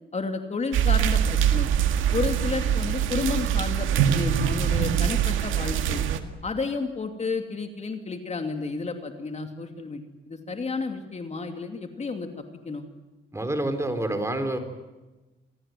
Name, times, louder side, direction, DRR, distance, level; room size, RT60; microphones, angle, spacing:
voice 1, 0.1-1.7 2.1-6.0 6.4-12.8, left 4 dB, 35° left, 6 dB, 2.7 m, -31 dB
sound 1, 0.7-6.2, right 9 dB, 85° right, 1.9 m, -23 dB
voice 2, 13.3-14.6, right 1 dB, 15° right, 8 dB, 3.9 m, -27 dB
28.0 x 19.0 x 9.3 m, 1.1 s
cardioid pair, 90°, 20 cm